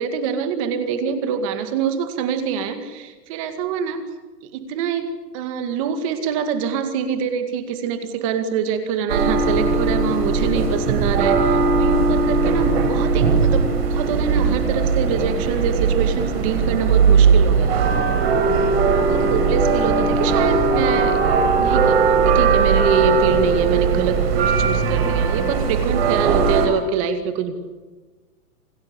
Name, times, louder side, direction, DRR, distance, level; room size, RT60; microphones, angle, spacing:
voice 1, 0.0-4.0 4.5-17.7 19.1-21.2 21.6-27.5, right 7 dB, 20° right, 9 dB, 2.1 m, -25 dB
sound 1, 9.1-26.7, right 5 dB, 35° right, 5.1 m, -18 dB
28.0 x 18.5 x 9.7 m, 1.3 s
hypercardioid pair, 170°, 49 cm